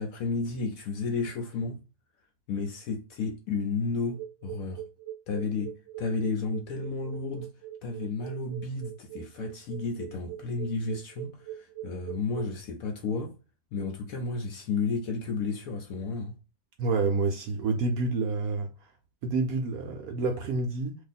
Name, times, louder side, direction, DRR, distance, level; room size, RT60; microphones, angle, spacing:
voice 1, 0.0-1.8 2.5-4.8 5.3-5.7 6.0-7.5 7.8-13.4 13.7-16.4, left 4 dB, 65° left, 0.9 m, -32 dB
sound 1, 4.1-12.5, right 12 dB, 90° right, 1.3 m, -41 dB
voice 2, 16.8-18.7 19.2-21.0, right 3 dB, 70° right, 0.9 m, -28 dB
2.7 x 2.4 x 4.0 m
omnidirectional pair, 1.9 m